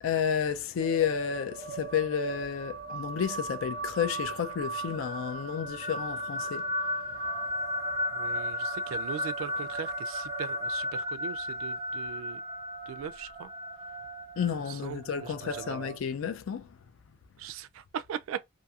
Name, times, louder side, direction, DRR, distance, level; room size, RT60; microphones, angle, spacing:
voice 1, 0.0-6.7 14.4-16.7, left 7 dB, 80° left, 0.4 m, -31 dB
sound 1, 0.8-16.0, equal, 30° right, 0.6 m, -35 dB
voice 2, 8.1-12.4 12.9-13.5 14.7-15.9 17.4-18.4, right 8 dB, 80° right, 0.3 m, -40 dB
2.7 x 2.5 x 2.3 m
head